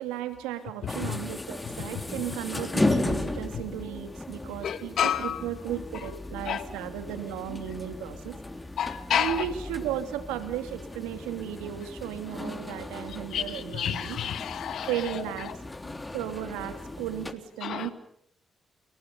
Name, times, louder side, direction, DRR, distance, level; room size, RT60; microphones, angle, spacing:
voice 1, 0.0-8.4 9.1-14.2 14.8-15.6 16.1-17.9, right 11 dB, 90° right, 8 dB, 2.8 m, -35 dB
sound 1, 0.9-17.3, left 2 dB, 20° left, 3.4 m, -35 dB
voice 2, 4.6-5.4 6.5-6.6 8.8-9.3 13.3-13.4 13.8-14.9 17.6-17.9, left 9 dB, 70° left, 11 dB, 2.4 m, -28 dB
29.5 x 29.0 x 5.5 m, 0.66 s
hypercardioid pair, 45°, 0 cm